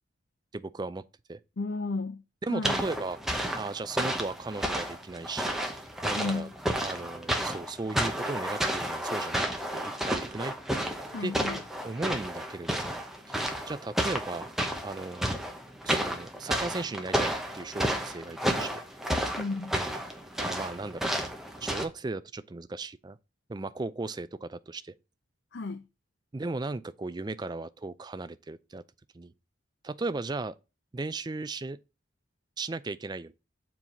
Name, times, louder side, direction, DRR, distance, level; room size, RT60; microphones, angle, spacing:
voice 1, 0.5-1.0 1.3-1.4 2.4-3.2 3.6-5.6 6.0-6.5 6.8-10.6 11.2-11.3 11.9-13.0 13.3-13.4 13.7-14.5 14.8-15.4 15.8-18.8 20.4-21.0 21.6-23.2 23.5-24.9 26.3-28.8 29.1-29.3 29.8-30.6 30.9-31.8 32.6-33.3, right 3 dB, 20° right, 0.4 m, -36 dB
voice 2, 1.6-2.2 2.5-2.8 6.2-6.5 11.1-11.6 19.4-19.7 25.5-25.8, left 3 dB, 60° left, 0.5 m, -33 dB
sound 1, 2.6-21.8, equal, ahead, 0.9 m, -31 dB
7.2 x 4.6 x 3.9 m
head